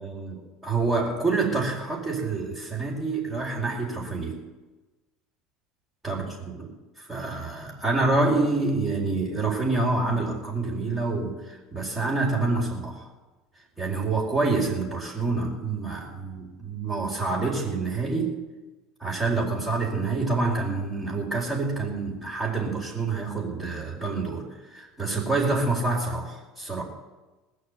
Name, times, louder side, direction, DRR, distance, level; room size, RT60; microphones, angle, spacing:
voice 1, 0.0-4.4 6.0-13.0 13.8-18.4 19.0-26.8, right 3 dB, 15° right, -5 dB, 4.6 m, -27 dB
20.0 x 6.6 x 8.2 m, 1.2 s
hypercardioid pair, 75°, 0 cm